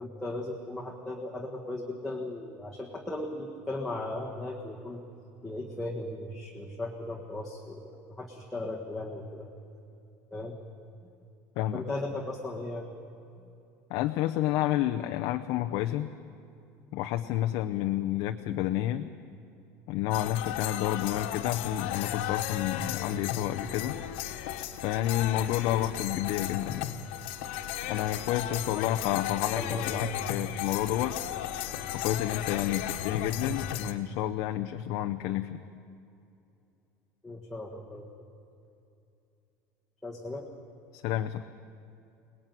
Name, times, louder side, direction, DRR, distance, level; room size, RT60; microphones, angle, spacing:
voice 1, 0.0-5.0 5.4-9.5 10.3-10.6 11.7-12.9 25.6-25.9 28.4-29.2 29.5-30.2 37.2-38.1 40.0-40.5, left 2 dB, ahead, -3 dB, 1.6 m, -37 dB
voice 2, 13.9-16.1 16.9-19.1 19.9-24.0 24.8-26.9 27.9-31.1 31.9-35.6 40.9-41.4, left 13 dB, 55° left, 6 dB, 0.8 m, -30 dB
sound 1, 20.1-33.9, left 10 dB, 85° left, 1.6 m, -35 dB
23.5 x 19.5 x 9.3 m, 2.6 s
cardioid pair, 175°, 7 cm